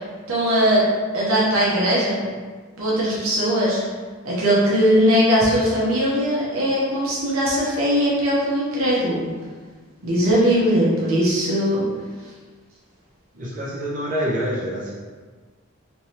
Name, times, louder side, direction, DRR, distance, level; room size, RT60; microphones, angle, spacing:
voice 1, 0.3-0.9 1.1-2.3 2.8-3.8 4.2-9.2 10.0-11.8, equal, 75° right, -6 dB, 0.9 m, -20 dB
voice 2, 13.3-14.9, equal, 40° right, -8 dB, 0.9 m, -26 dB
3.4 x 3.1 x 2.8 m, 1.5 s
head